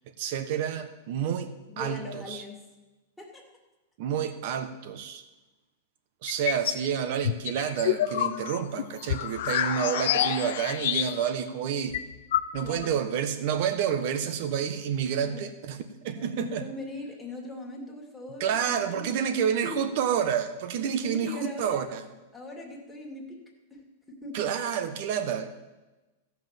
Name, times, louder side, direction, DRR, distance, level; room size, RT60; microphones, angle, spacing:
voice 1, 0.2-2.4 4.0-5.2 6.2-12.0 12.5-16.6 18.4-22.0 24.3-25.5, right 8 dB, 50° right, 9 dB, 1.3 m, -29 dB
voice 2, 1.7-2.6 3.2-3.4 12.6-13.0 15.2-15.4 16.1-19.3 19.6-19.9 20.9-21.9 22.3-23.4 23.7-23.8 24.1-24.4, left 2 dB, 5° left, -2 dB, 2.4 m, -40 dB
sound 1, 6.3-6.9 7.2-11.4 11.7-11.8 11.9-12.9, left 12 dB, 70° left, 0.6 m, -28 dB
14.5 x 6.0 x 7.5 m, 1.1 s
supercardioid pair, 150°, 0 cm